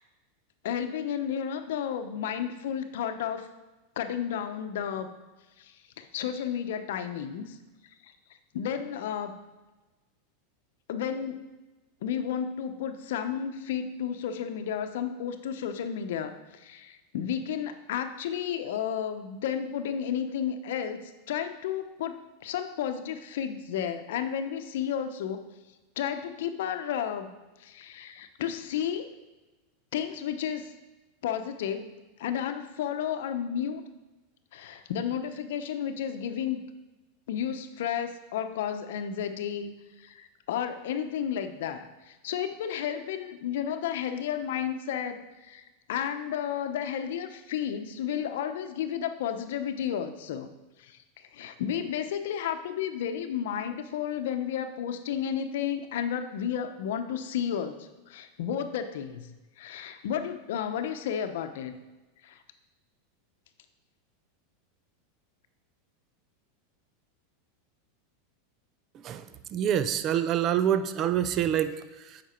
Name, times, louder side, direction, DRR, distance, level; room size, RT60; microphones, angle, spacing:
voice 1, 0.6-3.5 4.0-5.1 5.6-7.6 8.0-8.1 8.5-9.3 10.9-11.4 12.0-21.0 21.3-25.5 26.0-27.3 27.6-29.1 29.9-30.7 31.2-31.9 32.2-33.8 34.5-36.6 37.3-39.7 40.0-45.6 45.9-50.5 50.8-59.3 59.6-61.8 62.2-62.4, left 8 dB, 75° left, 9 dB, 0.8 m, -32 dB
voice 2, 69.5-72.2, right 10 dB, 40° right, 12 dB, 0.5 m, -26 dB
8.3 x 5.8 x 4.4 m, 1.1 s
hypercardioid pair, 115°, 0 cm